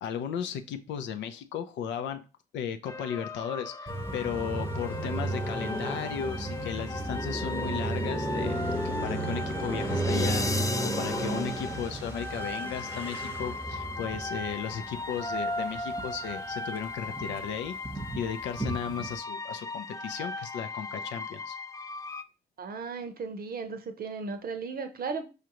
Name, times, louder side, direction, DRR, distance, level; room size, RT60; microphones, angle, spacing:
voice 1, 0.0-2.2 2.5-17.8 18.2-21.6, left 8 dB, 70° left, 0.5 m, -35 dB
sound 1, 2.9-22.2, left 2 dB, 15° left, 0.4 m, -37 dB
Car passing by, 3.9-16.3 16.7-19.2, right 2 dB, 10° right, 0.9 m, -33 dB
voice 2, 22.6-25.2, right 4 dB, 50° right, 0.7 m, -35 dB
5.0 x 2.4 x 2.9 m
hypercardioid pair, 45°, 19 cm